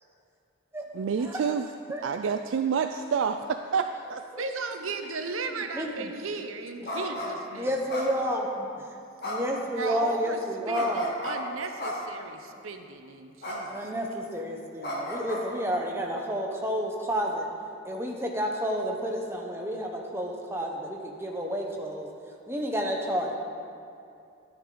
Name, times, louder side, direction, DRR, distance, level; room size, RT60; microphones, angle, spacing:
voice 1, 0.9-1.7 2.0-4.2, right 6 dB, 65° right, 0.3 m, -28 dB
voice 2, 4.4-7.7 9.8-10.4 10.7-13.9, right 3 dB, 85° right, 0.8 m, -35 dB
voice 3, 5.7-6.1 7.6-8.9 9.2-11.1 13.7-17.5 17.8-22.1 22.5-23.3, equal, 10° right, 0.9 m, -30 dB
sound 1, 6.8-7.3 7.9-8.6 9.2-9.6 10.7-11.3 11.8-12.2 13.4-13.6 13.9-14.2 14.8-15.4, left 1 dB, 50° left, 2.1 m, -34 dB
13.5 x 9.9 x 3.9 m
head